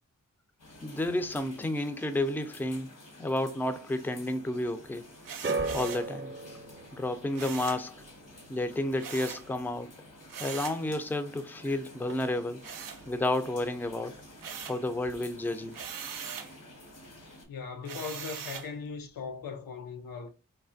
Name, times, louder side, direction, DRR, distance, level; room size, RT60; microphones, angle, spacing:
sound 1, 0.6-17.5, left 1 dB, 70° left, 1.1 m, -51 dB
voice 1, 0.8-2.9 3.2-5.0 5.7-6.3 6.9-8.0 8.5-9.9 10.4-12.6 13.1-14.2 14.6-15.8, left 1 dB, 5° left, 0.4 m, -31 dB
sound 2, 5.2-6.1 7.3-7.9 9.0-9.5 10.3-10.8 12.6-13.5 13.9-14.9 15.7-16.5 17.8-18.7, right 7 dB, 75° right, 0.5 m, -41 dB
sound 3, 5.4-11.7 12.0-12.6 13.4-13.5, right 3 dB, 35° right, 0.6 m, -39 dB
voice 2, 17.5-20.3, left 5 dB, 85° left, 0.6 m, -39 dB
3.2 x 2.1 x 2.5 m
cardioid pair, 45°, 33 cm